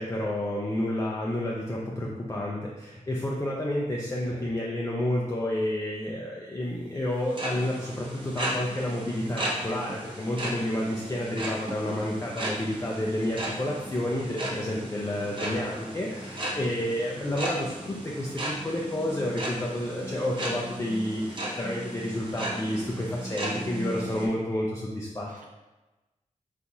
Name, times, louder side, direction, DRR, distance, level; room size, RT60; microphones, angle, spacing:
voice 1, 0.0-25.3, left 1 dB, 20° left, -3 dB, 0.4 m, -30 dB
sound 1, 7.1-24.3, right 1 dB, 40° right, 0.8 m, -35 dB
voice 2, 15.4-15.7 25.3-25.5, right 2 dB, 75° right, 1 dB, 0.6 m, -44 dB
3.9 x 2.4 x 2.8 m, 1.1 s
wide cardioid pair, 70°, 13 cm